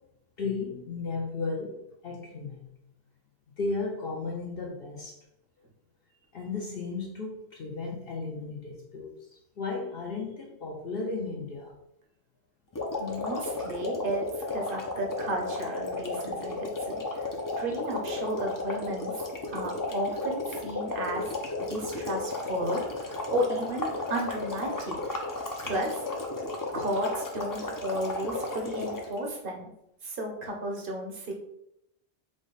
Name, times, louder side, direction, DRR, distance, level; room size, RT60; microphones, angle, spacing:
voice 1, 0.4-2.6 3.6-5.2 6.3-9.1 9.6-11.7, left 3 dB, 60° left, -2 dB, 0.8 m, -34 dB
sound 1, 12.7-29.2, left 2 dB, 30° left, 0.4 m, -34 dB
voice 2, 13.0-17.3 17.6-19.2 19.5-21.3 21.6-25.0 25.6-26.0 26.7-29.7 30.0-31.3, right 1 dB, 55° right, 0 dB, 0.9 m, -33 dB
5.0 x 2.1 x 3.9 m, 0.81 s
omnidirectional pair, 1.2 m